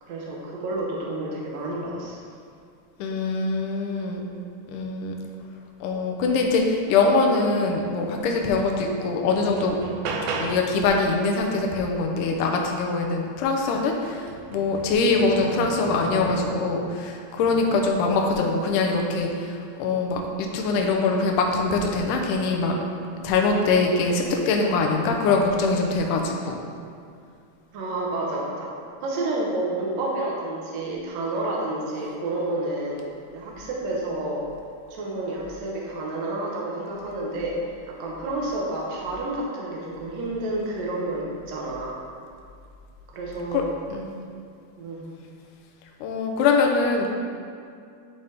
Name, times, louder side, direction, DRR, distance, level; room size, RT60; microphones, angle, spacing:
voice 1, 0.0-2.2 27.7-28.7 29.0-33.0 33.3-34.4 34.9-37.5 37.9-42.0 43.1-43.7 44.8-45.1, right 2 dB, 65° right, -3 dB, 1.8 m, -30 dB
voice 2, 3.0-4.2 4.7-5.2 5.8-9.8 10.1-22.8 23.2-26.6 43.5-43.6 43.9-44.1 46.0-47.1, left 3 dB, 75° left, 2 dB, 2.0 m, -23 dB
sound 1, 8.5-8.6 9.0-10.8 13.2-13.3 13.7-16.7 17.4-18.0 19.0-19.3, right 4 dB, 85° right, 1.8 m, -34 dB
10.5 x 4.1 x 3.4 m, 2.3 s
omnidirectional pair, 4.3 m